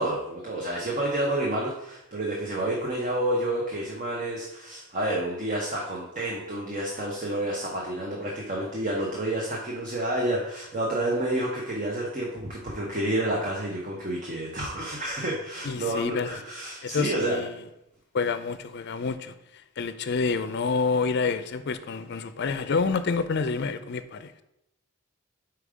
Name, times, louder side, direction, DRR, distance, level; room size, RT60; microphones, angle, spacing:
voice 1, 0.0-17.4, right 1 dB, 35° right, 0.9 m, -29 dB
voice 2, 15.6-16.4 16.8-17.5 18.1-19.3 19.8-24.4, left 4 dB, 55° left, 0.5 m, -28 dB
5.3 x 4.6 x 4.9 m
head